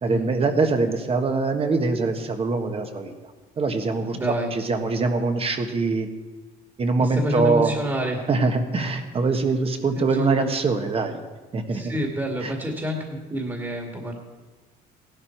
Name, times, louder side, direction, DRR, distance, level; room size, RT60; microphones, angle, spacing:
voice 1, 0.0-3.1 3.6-4.2 4.5-6.1 6.8-7.7 8.3-11.2 11.5-12.0 12.4-12.5, right 3 dB, 35° right, 6 dB, 1.4 m, -23 dB
voice 2, 4.1-4.5 7.0-8.2 9.9-10.5 11.7-14.1, equal, 20° right, 1 dB, 2.1 m, -28 dB
16.0 x 12.0 x 4.5 m, 1.3 s
cardioid pair, 110°, 17 cm